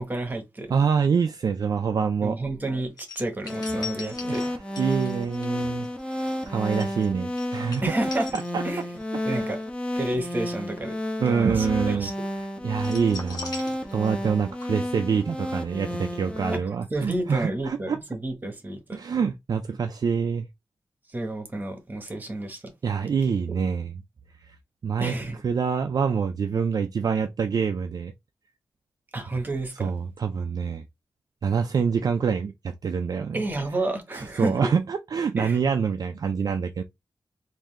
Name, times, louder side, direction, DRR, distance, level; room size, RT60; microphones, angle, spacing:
voice 1, 0.0-0.7 2.2-4.5 7.8-8.3 8.6-8.8 9.2-9.6 9.9-11.0 11.3-12.1 16.6-18.8 21.1-22.6 25.0-25.4 29.1-29.9 33.3-34.7 35.4-35.6, right 2 dB, 20° right, 1.1 m, -30 dB
voice 2, 0.7-2.4 4.2-7.9 8.3-8.6 9.1-9.5 11.2-12.1 12.6-13.6 13.9-18.0 18.9-20.5 22.8-24.0 24.4-24.6 24.8-25.1 25.4-28.1 29.8-30.8 31.4-33.4 34.1-36.8, right 6 dB, 50° right, 0.3 m, -26 dB
sound 1, 3.0-9.1 9.4-9.6 12.8-14.3 14.6-14.7, left 4 dB, 50° left, 1.4 m, -40 dB
sound 2, 3.4-16.6, left 1 dB, 15° left, 0.9 m, -31 dB
3.7 x 2.6 x 3.2 m
wide cardioid pair, 165°, 8 cm